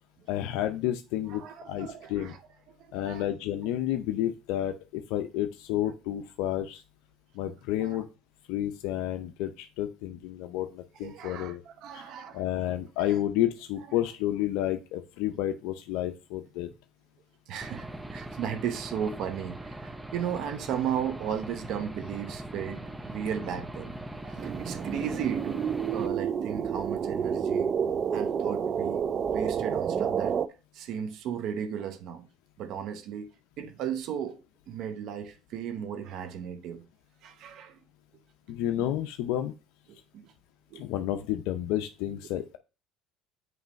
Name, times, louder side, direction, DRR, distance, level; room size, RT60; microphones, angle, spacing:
voice 1, 0.3-2.3 2.9-6.8 7.3-8.1 8.5-11.6 11.9-16.7 38.5-39.5 40.7-42.6, left 12 dB, 80° left, 0.5 m, -31 dB
voice 2, 1.3-2.4 2.7-3.3 7.8-8.0 11.0-12.4 13.1-13.2 17.5-24.0 24.2-25.6 25.9-27.7 28.1-29.1 29.3-30.4 30.7-32.2 32.6-33.3 33.6-34.4 34.7-36.8 37.2-37.8 38.8-38.9 39.9-40.3 40.7-40.8, right 8 dB, 65° right, 0.9 m, -35 dB
Aircraft / Engine, 17.6-26.1, right 1 dB, 10° right, 0.7 m, -41 dB
sound 1, 24.4-30.5, right 7 dB, 45° right, 0.5 m, -29 dB
7.8 x 3.2 x 5.1 m
supercardioid pair, 100°, 0 cm